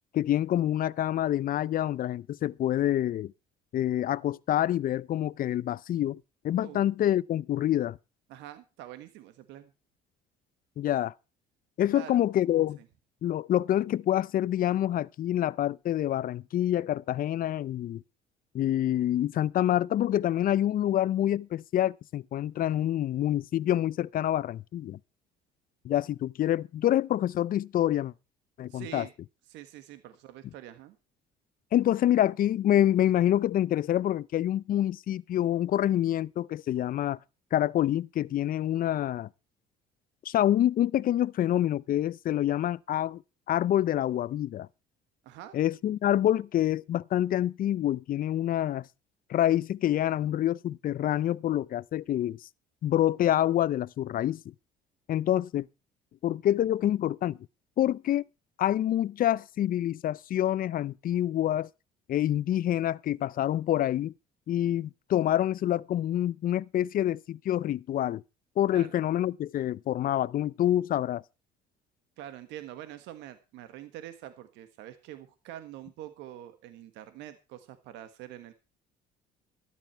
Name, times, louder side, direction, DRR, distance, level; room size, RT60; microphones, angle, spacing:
voice 1, 0.1-3.3 3.7-6.2 6.4-8.0 10.8-11.1 11.8-12.8 13.2-18.0 18.5-25.0 25.8-28.1 28.6-29.1 31.7-37.2 37.5-39.3 40.3-43.2 43.5-44.7 45.5-48.9 49.3-52.4 52.8-54.4 55.1-55.7 56.2-57.4 57.8-58.2 58.6-61.7 62.1-64.1 64.5-68.2 68.6-71.2, left 12 dB, 50° left, 0.6 m, -27 dB
voice 2, 8.3-9.7 11.9-12.2 28.7-29.1 29.5-31.0 45.2-45.5 68.7-68.9 72.2-78.5, right 12 dB, 80° right, 1.5 m, -45 dB
13.5 x 11.0 x 4.6 m
supercardioid pair, 85°, 18 cm